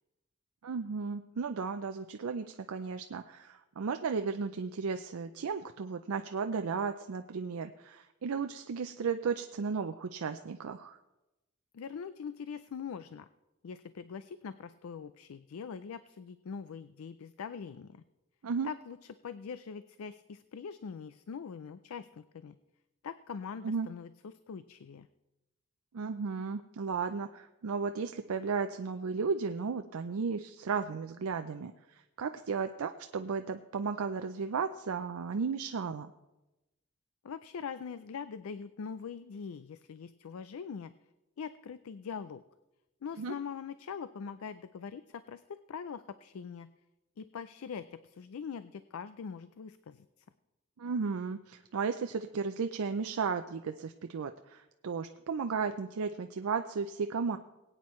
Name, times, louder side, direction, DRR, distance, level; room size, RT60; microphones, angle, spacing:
voice 1, 0.6-11.0 18.4-18.7 23.6-23.9 25.9-36.1 43.2-43.3 50.8-57.4, right 5 dB, 80° right, 7 dB, 0.5 m, -34 dB
voice 2, 11.7-13.3 13.6-18.0 18.6-22.6 23.0-25.1 37.2-40.9 41.4-42.4 43.0-46.7 47.2-50.1, left 6 dB, 75° left, 13 dB, 0.4 m, -42 dB
21.0 x 8.9 x 3.1 m, 0.99 s
head